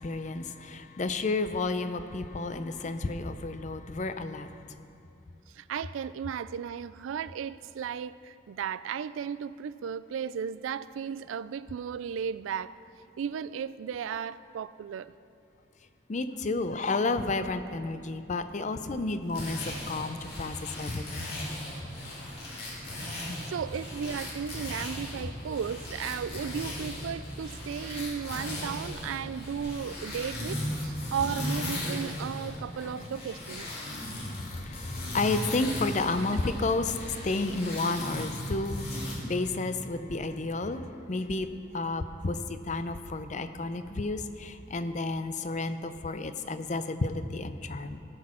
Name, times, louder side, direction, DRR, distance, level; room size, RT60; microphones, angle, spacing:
voice 1, 0.0-4.8 16.1-21.3 23.2-23.4 31.0-31.1 32.8-32.9 33.7-48.0, left 3 dB, 40° left, 10 dB, 0.5 m, -32 dB
voice 2, 5.5-12.7 13.2-15.1 20.2-20.3 22.4-22.5 23.2-33.7 36.2-36.3, right 7 dB, 85° right, 17 dB, 0.3 m, -35 dB
sound 1, 19.2-39.1, left 1 dB, 55° left, 2.7 m, -37 dB
sound 2, 23.8-31.6, equal, 15° left, 1.9 m, -48 dB
18.0 x 6.2 x 4.4 m, 2.6 s
head